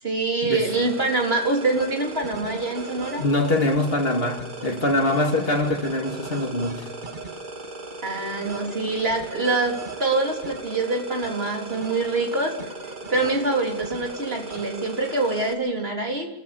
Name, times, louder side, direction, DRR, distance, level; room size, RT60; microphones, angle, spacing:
voice 1, 0.0-3.2 8.0-12.5 13.1-16.3, right 3 dB, 65° right, 3.9 m, -25 dB
sound 1, 0.7-15.5, right 3 dB, 50° right, 2.3 m, -37 dB
voice 2, 3.2-6.9, left 2 dB, 65° left, 2.5 m, -23 dB
29.0 x 15.0 x 7.0 m
omnidirectional pair, 1.1 m